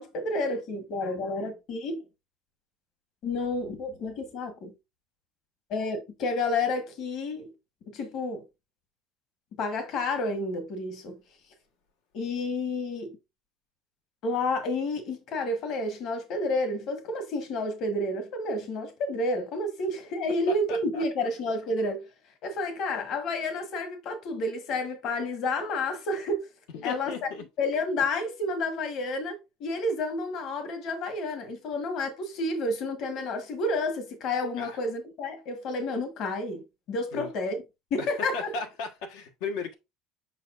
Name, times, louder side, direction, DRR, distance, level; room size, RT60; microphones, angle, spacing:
voice 1, 0.0-2.0 3.2-4.7 5.7-7.5 7.9-8.4 9.6-11.2 12.1-13.1 14.2-22.1 22.4-26.5 26.8-27.3 27.6-37.6 37.9-38.5, left 2 dB, 45° left, 1.3 m, -30 dB
voice 2, 20.5-21.3 26.7-27.4 34.6-34.8 37.1-37.3 38.0-39.7, left 4 dB, 85° left, 1.3 m, -36 dB
6.8 x 5.6 x 2.5 m
cardioid pair, 165°, 0 cm